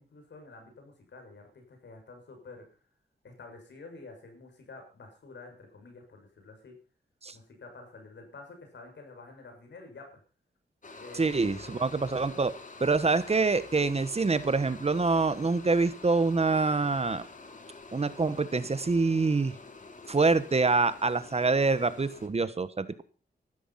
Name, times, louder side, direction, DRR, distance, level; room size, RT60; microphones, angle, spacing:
voice 1, 0.0-2.6 3.2-6.7 7.3-10.2 11.0-11.8, left 3 dB, 85° left, 4 dB, 6.5 m, -49 dB
sound 1, 10.8-22.3, left 3 dB, 45° left, 2.7 m, -47 dB
voice 2, 11.1-12.5 12.8-17.3 17.9-19.5 20.1-23.0, right 3 dB, 35° right, 14 dB, 1.2 m, -26 dB
15.0 x 13.0 x 5.8 m, 0.38 s
wide cardioid pair, 95°, 18 cm